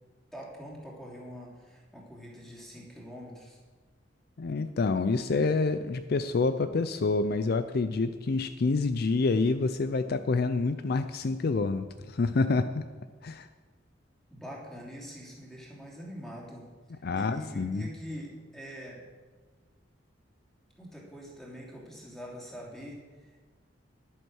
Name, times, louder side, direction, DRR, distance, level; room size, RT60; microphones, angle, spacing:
voice 1, 0.3-3.6 14.3-19.0 20.8-23.4, equal, ahead, -4 dB, 3.0 m, -44 dB
voice 2, 4.4-12.8 13.2-13.5 17.0-17.9, left 3 dB, 55° left, 10 dB, 0.4 m, -27 dB
11.0 x 9.1 x 6.3 m, 1.4 s
head